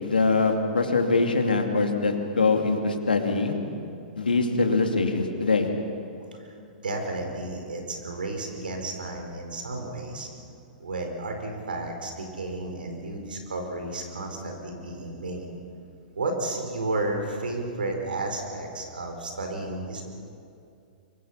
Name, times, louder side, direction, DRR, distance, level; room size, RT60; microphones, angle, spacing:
voice 1, 0.0-3.6 4.2-5.7, left 3 dB, 85° left, 3 dB, 2.7 m, -23 dB
voice 2, 6.8-10.3 10.8-15.5 16.1-20.0, right 2 dB, 80° right, 3 dB, 4.9 m, -32 dB
24.5 x 24.0 x 5.9 m, 2.5 s
hypercardioid pair, 115°, 5 cm